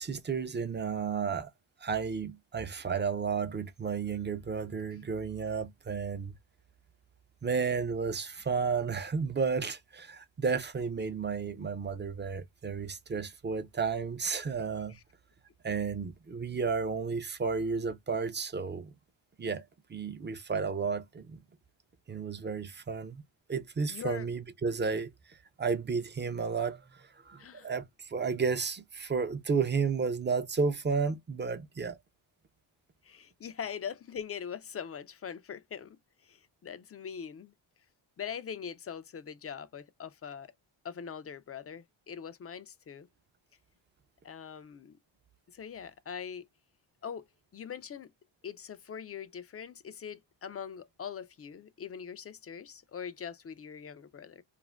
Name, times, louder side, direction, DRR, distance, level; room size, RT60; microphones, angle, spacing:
voice 1, 0.0-1.5 1.8-6.3 7.4-15.0 15.6-18.9 19.4-19.6 19.9-21.4 22.1-23.2 23.5-32.0, right 5 dB, 25° right, 0.5 m, -32 dB
voice 2, 23.9-24.3 27.4-27.7 33.0-37.5 38.2-40.5 40.8-43.1 44.2-45.0 45.5-46.5 47.0-47.3 47.5-48.1 48.4-54.4, left 7 dB, 30° left, 0.4 m, -42 dB
2.5 x 2.0 x 3.2 m
cardioid pair, 95°, 48 cm